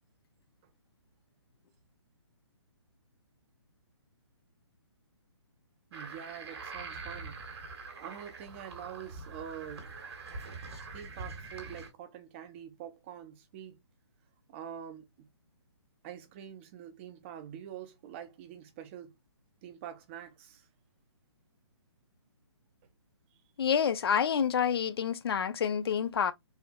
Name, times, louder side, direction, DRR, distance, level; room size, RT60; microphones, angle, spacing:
voice 1, 5.9-7.4 8.0-9.9 10.9-13.8 14.5-15.3 16.0-19.1 19.6-20.7, right 9 dB, 25° right, 0.7 m, -45 dB
sound 1, 5.9-11.9, right 4 dB, 65° right, 1.6 m, -44 dB
voice 2, 23.6-26.3, left 7 dB, 55° left, 0.6 m, -28 dB
4.3 x 2.6 x 2.2 m
hypercardioid pair, 150°, 15 cm